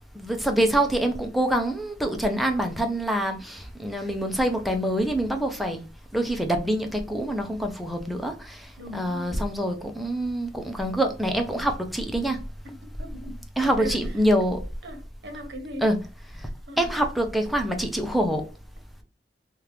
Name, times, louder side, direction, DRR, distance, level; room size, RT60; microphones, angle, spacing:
voice 1, 0.1-5.9 6.1-12.4 13.6-14.6 15.8-16.0 16.3-16.5 16.8-18.5, right 1 dB, ahead, 0.5 m, -25 dB
voice 2, 8.8-9.4 12.6-13.4 13.8-14.0 14.8-15.9 16.7-16.9, equal, 75° right, 0.9 m, -38 dB
2.9 x 2.4 x 3.3 m
head